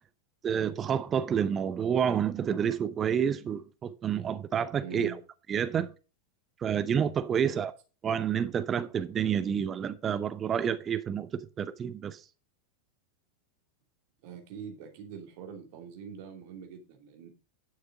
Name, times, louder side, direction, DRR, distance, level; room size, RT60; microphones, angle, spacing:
voice 1, 0.4-5.1 5.5-5.9 6.6-7.7 8.0-11.3 11.6-12.2, right 8 dB, 25° right, 0.8 m, -29 dB
voice 2, 4.8-5.2 7.3-7.6 14.2-17.3, right 7 dB, 50° right, 2.8 m, -43 dB
10.5 x 6.5 x 4.9 m
figure-of-eight pair, 90°, 0 cm